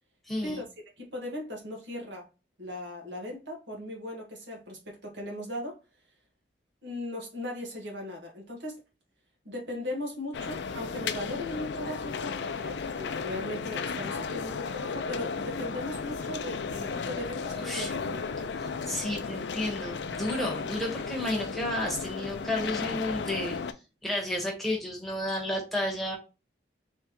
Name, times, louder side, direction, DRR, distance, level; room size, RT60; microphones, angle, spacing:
voice 1, 0.3-0.6 17.6-17.9 18.9-23.6 24.0-26.1, left 1 dB, ahead, 1.3 m, -32 dB
voice 2, 1.0-2.3 2.6-5.8 6.8-8.8 9.4-18.2, left 1 dB, 75° right, 1.8 m, -38 dB
sound 1, 10.3-23.7, left 5 dB, 70° left, 0.4 m, -34 dB
4.2 x 3.5 x 3.0 m
head